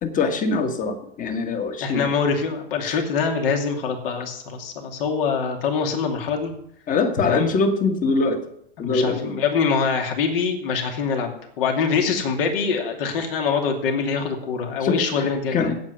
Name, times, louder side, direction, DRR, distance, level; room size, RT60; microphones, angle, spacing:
voice 1, 0.0-2.1 2.8-3.0 6.9-8.4 8.8-9.3 14.8-15.7, left 4 dB, 25° left, 7 dB, 1.7 m, -23 dB
voice 2, 1.8-6.5 7.2-7.5 8.8-15.7, left 5 dB, 65° left, 3 dB, 2.6 m, -24 dB
8.7 x 8.5 x 7.9 m, 0.75 s
hypercardioid pair, 105°, 31 cm